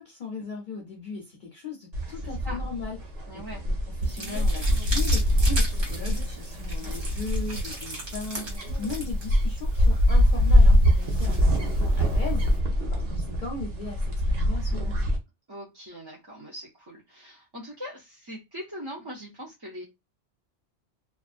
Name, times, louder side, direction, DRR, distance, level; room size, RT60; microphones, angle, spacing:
voice 1, 0.0-3.7 4.0-8.5 8.8-12.5 12.8-15.2, left 4 dB, 50° left, 0.7 m, -38 dB
sound 1, 1.9-15.2, equal, 90° right, 1.1 m, -24 dB
voice 2, 2.0-2.7 3.3-3.6 15.5-19.8, equal, 30° right, 0.5 m, -41 dB
sound 2, 4.0-12.6, right 1 dB, 65° right, 1.4 m, -38 dB
2.5 x 2.3 x 2.4 m
omnidirectional pair, 1.2 m